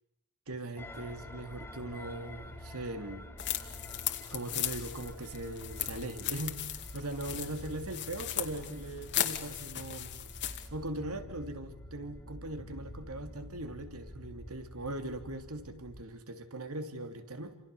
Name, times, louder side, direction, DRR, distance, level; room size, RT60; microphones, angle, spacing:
voice 1, 0.5-3.3 4.3-10.1 10.4-17.5, right 1 dB, 70° right, 7 dB, 2.9 m, -40 dB
sound 1, 0.8-16.0, left 1 dB, 10° left, 3.0 m, -48 dB
sound 2, 3.4-10.7, left 11 dB, 55° left, 2.3 m, -37 dB
29.5 x 27.5 x 6.9 m, 0.78 s
head